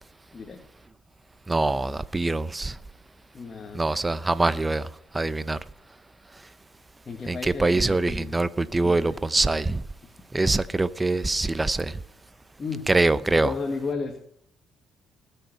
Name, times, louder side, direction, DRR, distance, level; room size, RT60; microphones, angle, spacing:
voice 1, 1.5-2.7 3.7-4.8 5.1-5.6 7.3-9.8 10.3-11.9 12.9-13.5, right 2 dB, 15° right, 0.6 m, -24 dB
voice 2, 3.3-3.8 7.0-8.4 8.8-9.3 10.0-10.1 11.7-11.8 12.6-12.9 13.3-14.2, left 4 dB, 35° left, 1.7 m, -34 dB
20.0 x 6.8 x 4.5 m
cardioid pair, 90°, 0 cm